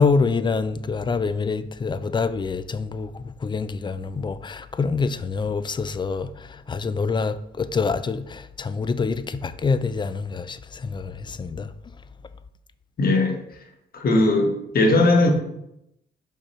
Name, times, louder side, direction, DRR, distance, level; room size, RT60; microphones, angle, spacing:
voice 1, 0.0-11.7, left 4 dB, 25° left, 0.4 m, -26 dB
voice 2, 13.0-13.4 13.9-15.3, left 2 dB, 50° left, 1.3 m, -19 dB
5.3 x 5.2 x 4.3 m
cardioid pair, 90°, 20 cm